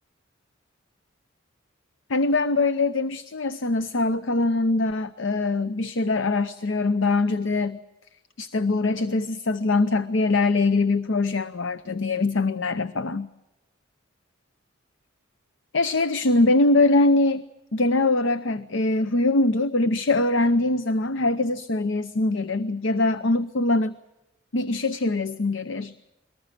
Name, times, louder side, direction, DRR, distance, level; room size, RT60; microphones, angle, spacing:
voice 1, 2.1-7.8 8.4-13.3 15.7-17.4 17.7-24.0 24.5-25.9, left 2 dB, 70° left, 13 dB, 0.7 m, -23 dB
23.0 x 19.5 x 7.5 m, 0.97 s
head